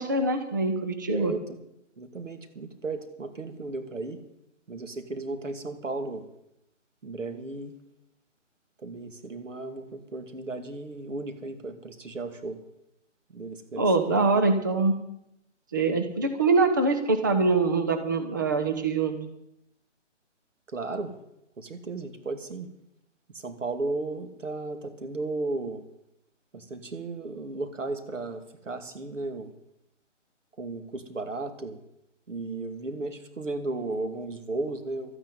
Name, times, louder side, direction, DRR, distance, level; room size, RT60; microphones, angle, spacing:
voice 1, 0.0-1.3 13.8-14.9 15.7-19.2, right 3 dB, 15° right, 7 dB, 0.6 m, -24 dB
voice 2, 1.1-1.4 2.0-4.2 4.7-6.2 7.0-7.7 8.8-12.6 13.3-13.8 14.1-14.4 20.7-21.1 21.6-22.7 23.4-25.8 26.5-29.5 30.6-31.8 32.3-35.2, right 3 dB, 90° right, 8 dB, 2.5 m, -35 dB
13.0 x 9.1 x 9.2 m, 0.82 s
hypercardioid pair, 165°, 36 cm